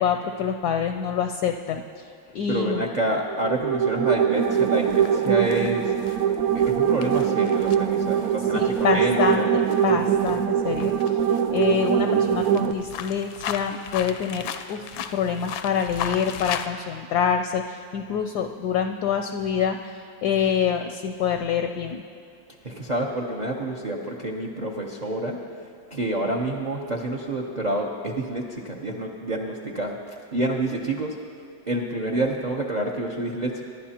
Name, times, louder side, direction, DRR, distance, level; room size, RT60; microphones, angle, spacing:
voice 1, 0.0-2.1 2.3-2.8 8.5-11.2 11.5-22.0, left 7 dB, 70° left, 6 dB, 1.0 m, -26 dB
voice 2, 2.5-5.9 6.5-9.6 22.6-25.4 25.9-31.2 31.7-33.6, right 1 dB, 55° right, 0 dB, 0.4 m, -28 dB
sound 1, 3.3-12.7, right 8 dB, 80° right, 0.8 m, -22 dB
sound 2, 4.4-16.7, left 8 dB, 85° left, 1.4 m, -37 dB
23.5 x 11.5 x 2.9 m, 2.5 s
omnidirectional pair, 2.1 m